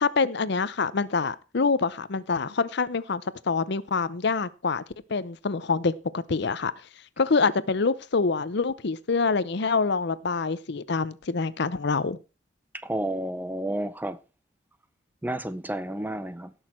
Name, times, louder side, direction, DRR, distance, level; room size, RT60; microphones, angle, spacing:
voice 1, 0.0-4.8 5.1-6.7 7.2-12.2, left 4 dB, 60° left, 0.7 m, -26 dB
voice 2, 12.7-14.2 15.2-16.5, right 1 dB, 10° right, 0.6 m, -31 dB
17.0 x 6.4 x 4.4 m
head